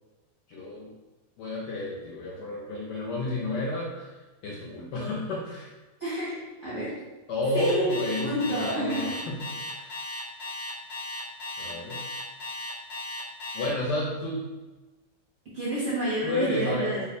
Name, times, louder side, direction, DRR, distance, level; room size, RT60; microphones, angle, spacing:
voice 1, 0.5-0.9 1.4-5.7 7.3-10.0 11.6-12.1 13.5-14.5 16.2-16.9, left 1 dB, 70° left, -4 dB, 1.1 m, -31 dB
voice 2, 6.0-6.9 7.5-9.2 15.5-17.0, right 1 dB, 65° right, -8 dB, 0.7 m, -29 dB
Alarm, 7.6-13.7, left 2 dB, 50° left, 0.9 m, -36 dB
3.2 x 2.0 x 4.1 m, 1.1 s
omnidirectional pair, 2.0 m